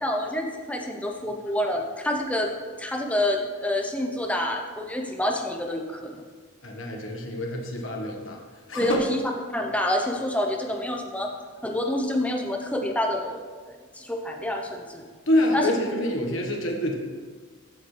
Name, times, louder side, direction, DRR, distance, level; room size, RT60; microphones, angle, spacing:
voice 1, 0.0-2.5 2.8-6.2 8.8-9.2 9.5-11.3 11.6-13.4 13.9-15.0 15.5-15.7, left 1 dB, 5° left, 2 dB, 0.9 m, -27 dB
voice 2, 6.6-8.4 8.7-9.0 15.3-16.9, left 1 dB, 60° left, 1 dB, 1.5 m, -26 dB
15.5 x 7.1 x 3.4 m, 1.5 s
head